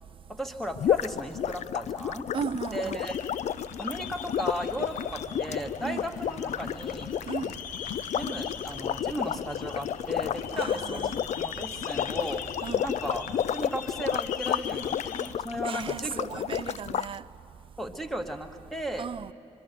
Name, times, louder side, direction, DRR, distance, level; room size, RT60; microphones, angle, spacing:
voice 1, 0.3-2.3 2.7-3.2 3.8-7.1 8.1-12.4 12.8-16.4 17.8-19.1, equal, ahead, 1.7 m, -36 dB
sound 1, 0.8-17.1, left 9 dB, 55° left, 0.5 m, -31 dB
voice 2, 2.3-3.1 5.8-6.1 7.3-7.6 10.5-11.2 12.6-12.9 15.6-17.3 19.0-19.3, right 7 dB, 40° right, 0.5 m, -36 dB
sound 2, 3.0-15.3, left 8 dB, 70° left, 1.0 m, -42 dB
sound 3, 3.9-13.4, equal, 30° left, 3.0 m, -48 dB
25.0 x 20.5 x 6.9 m
supercardioid pair, 70°, 14 cm